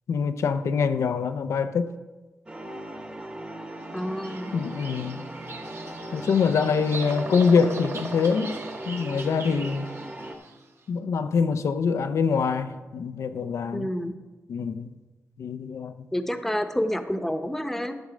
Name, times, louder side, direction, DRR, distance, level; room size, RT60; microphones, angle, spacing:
voice 1, 0.1-1.9 4.5-5.3 6.1-8.6 8.9-9.9 10.9-13.9 14.5-14.9 15.4-16.1, left 5 dB, 80° left, 10 dB, 0.6 m, -24 dB
sound 1, 2.5-10.4, right 1 dB, 20° right, 1.1 m, -38 dB
voice 2, 3.9-4.5 13.7-14.1 16.1-18.0, equal, 5° left, 8 dB, 0.8 m, -28 dB
Bird vocalization bird call bird song, 4.0-10.6, right 4 dB, 55° right, 1.0 m, -40 dB
11.5 x 6.6 x 5.0 m, 1.2 s
cardioid pair, 85°, 5 cm